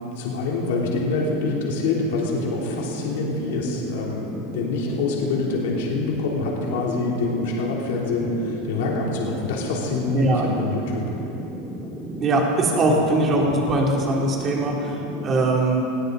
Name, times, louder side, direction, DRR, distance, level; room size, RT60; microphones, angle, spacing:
voice 1, 0.2-11.0 13.0-13.1, left 3 dB, 75° left, -2 dB, 3.2 m, -26 dB
sound 1, 1.1-15.6, equal, ahead, 2.0 m, -34 dB
voice 2, 12.2-14.9 15.2-15.9, right 2 dB, 25° right, -1 dB, 2.8 m, -21 dB
19.5 x 16.0 x 4.0 m, 2.9 s
supercardioid pair, 150°, 0 cm